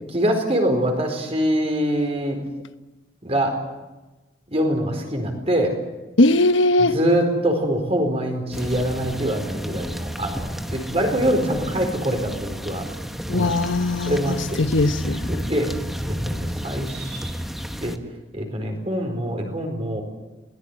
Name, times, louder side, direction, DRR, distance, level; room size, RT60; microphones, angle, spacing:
voice 1, 0.1-2.4 3.2-3.6 4.5-5.8 6.8-12.8 13.3-13.6 14.1-14.6 15.3-15.7 16.0-17.3 17.8-18.0 18.3-20.0, equal, 30° right, 4.4 m, -24 dB
voice 2, 6.2-7.0 13.3-15.3, left 2 dB, 80° left, 1.1 m, -19 dB
sound 1, 8.5-18.0, equal, ahead, 1.0 m, -31 dB
21.5 x 18.0 x 9.9 m
head